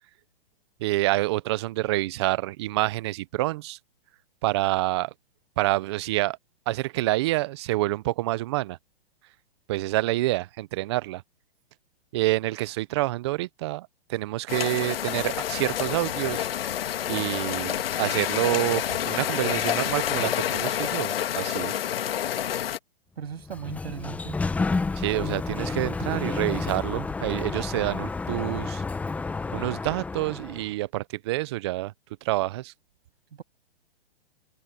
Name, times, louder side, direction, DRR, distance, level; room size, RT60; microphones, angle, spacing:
voice 1, 0.8-3.8 4.4-5.1 5.6-6.4 6.7-8.8 9.7-11.2 12.1-16.5 17.1-21.7 25.0-28.8 29.5-31.9 32.2-32.7, right 18 dB, 30° right, 0.4 m, -27 dB
sound 1, 14.5-22.8, left 11 dB, 70° left, 1.6 m, -28 dB
voice 2, 23.2-24.4 33.3-33.4, right 8 dB, 75° right, 7.0 m, -37 dB
Sliding door, 23.3-30.7, left 3 dB, 5° left, 0.8 m, -30 dB
hypercardioid pair, 150°, 31 cm